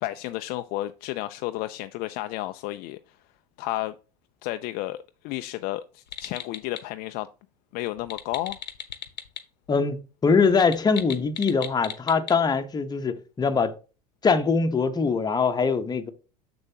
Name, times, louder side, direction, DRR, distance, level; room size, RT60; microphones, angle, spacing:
voice 1, 0.0-3.0 3.6-4.0 4.4-7.3 7.7-8.6, left 16 dB, 45° left, 0.4 m, -32 dB
sound 1, 6.1-6.8 8.0-9.4 9.7-9.8 10.5-12.3, left 8 dB, 90° left, 0.9 m, -37 dB
voice 2, 9.7-13.7 14.2-16.1, left 5 dB, 20° left, 1.0 m, -23 dB
7.0 x 6.5 x 2.9 m
hypercardioid pair, 85°, 21 cm